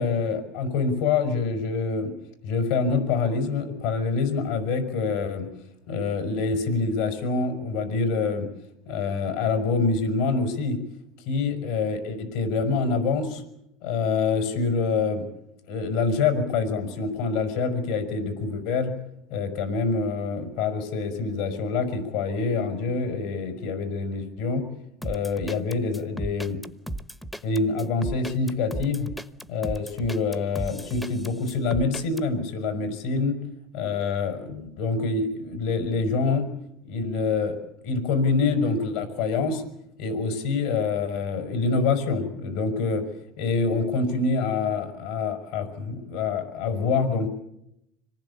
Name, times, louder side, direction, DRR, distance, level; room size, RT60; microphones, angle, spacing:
voice 1, 0.0-2.1 2.4-5.5 5.9-8.5 8.9-10.8 11.3-13.4 13.8-15.3 15.7-18.9 19.3-24.7 25.0-26.6 27.4-29.1 29.5-33.4 33.7-36.5 36.8-39.6 40.0-43.1 43.4-47.3, left 4 dB, 70° left, 6 dB, 5.4 m, -26 dB
sound 1, 25.0-32.2, right 1 dB, 5° left, 1.1 m, -35 dB
25.5 x 19.5 x 8.5 m, 0.81 s
supercardioid pair, 130°, 0 cm